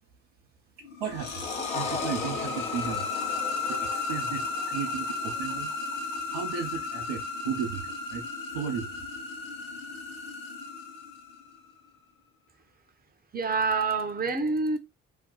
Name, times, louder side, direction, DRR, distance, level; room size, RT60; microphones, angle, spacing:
sound 1, 0.8-11.6, left 4 dB, 85° left, 0.7 m, -34 dB
voice 1, 1.0-1.5 1.7-3.1 3.7-5.7 6.1-8.3 8.5-9.0, right 7 dB, 65° right, 0.7 m, -35 dB
sound 2, 1.1-5.7, left 5 dB, 15° left, 0.4 m, -38 dB
voice 2, 13.3-14.8, right 4 dB, 20° right, 0.8 m, -27 dB
2.7 x 2.1 x 3.9 m
figure-of-eight pair, 40°, 41 cm